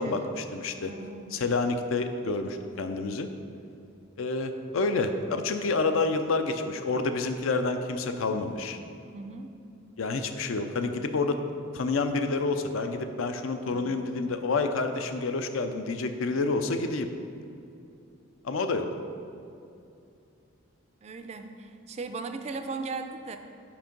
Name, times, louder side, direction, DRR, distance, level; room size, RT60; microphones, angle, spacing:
voice 1, 0.0-0.9 1.3-3.3 4.2-8.8 10.0-11.4 11.7-17.1 18.4-18.9, left 3 dB, 80° left, 8 dB, 0.5 m, -28 dB
voice 2, 0.9-1.5 9.1-9.5 13.7-14.1 21.0-23.4, right 4 dB, 30° right, 8 dB, 0.3 m, -38 dB
5.9 x 4.6 x 5.2 m, 2.6 s
head